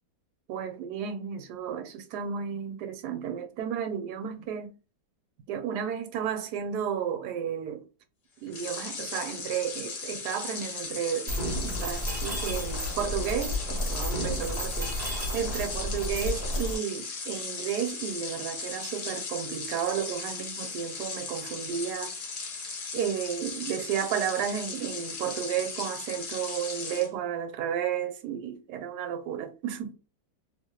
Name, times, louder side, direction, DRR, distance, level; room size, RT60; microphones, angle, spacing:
voice 1, 0.5-4.7 5.5-7.9 8.4-11.3 11.6-14.9 15.3-22.1 22.9-29.9, right 8 dB, 70° right, 1.1 m, -32 dB
sound 1, 8.5-27.1, left 4 dB, 55° left, 1.3 m, -37 dB
Mechanisms, 11.3-16.7, left 1 dB, 35° right, 1.6 m, -32 dB
3.0 x 2.9 x 2.3 m
omnidirectional pair, 2.0 m